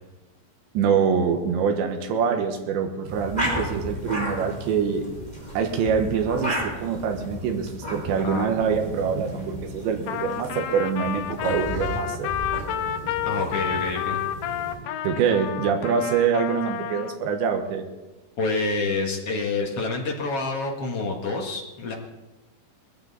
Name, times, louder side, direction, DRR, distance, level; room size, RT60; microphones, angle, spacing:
voice 1, 0.8-5.1 5.6-12.3 15.0-17.8, right 6 dB, 85° right, 4 dB, 3.6 m, -25 dB
sound 1, 3.0-14.8, right 1 dB, 10° right, 4.5 m, -33 dB
Trumpet, 10.1-17.2, left 10 dB, 80° left, 2.9 m, -30 dB
voice 2, 13.3-14.2 18.4-21.9, left 3 dB, 55° left, 0 dB, 1.8 m, -27 dB
20.0 x 15.0 x 4.1 m, 1.1 s
omnidirectional pair, 5.0 m